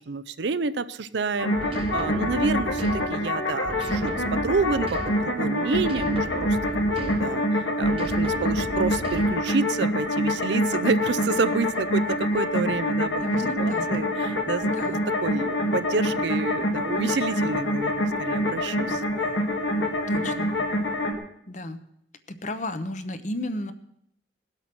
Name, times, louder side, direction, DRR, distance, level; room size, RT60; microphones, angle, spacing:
voice 1, 0.0-6.6 7.0-13.2 13.6-14.7 15.2-19.0, right 4 dB, 70° right, 14 dB, 0.5 m, -29 dB
sound 1, 1.4-21.1, left 1 dB, 85° left, 2.2 m, -26 dB
sound 2, 1.6-3.3 3.6-5.4 5.7-7.5 7.8-9.5, right 1 dB, 30° right, 0.9 m, -36 dB
voice 2, 13.2-13.9 14.7-15.0 20.1-20.5 21.5-21.8 22.3-23.7, left 1 dB, 40° left, 10 dB, 0.9 m, -33 dB
18.5 x 8.1 x 6.1 m, 0.72 s
head